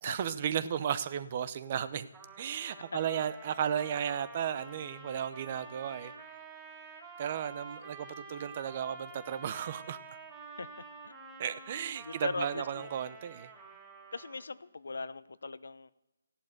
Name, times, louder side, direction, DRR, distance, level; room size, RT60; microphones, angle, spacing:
voice 1, 0.0-2.1 2.4-6.1 7.2-10.0 11.4-13.5, right 9 dB, 35° right, 15 dB, 0.7 m, -34 dB
Trumpet, 2.1-14.6, right 4 dB, 10° right, 3.4 m, -49 dB
voice 2, 12.0-12.9 14.1-15.9, left 3 dB, 75° left, 15 dB, 0.8 m, -39 dB
15.0 x 11.0 x 6.6 m, 0.98 s
hypercardioid pair, 165°, 0 cm